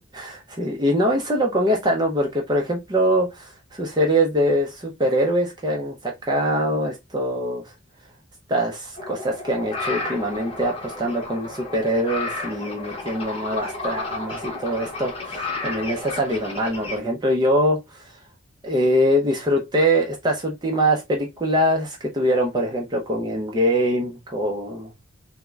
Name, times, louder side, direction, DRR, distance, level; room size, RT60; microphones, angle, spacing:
voice 1, 0.0-7.7 8.5-18.1 18.6-24.9, equal, 20° right, 0.4 m, -23 dB
sound 1, 9.0-17.0, left 3 dB, 25° left, 0.8 m, -32 dB
3.5 x 2.0 x 3.2 m
head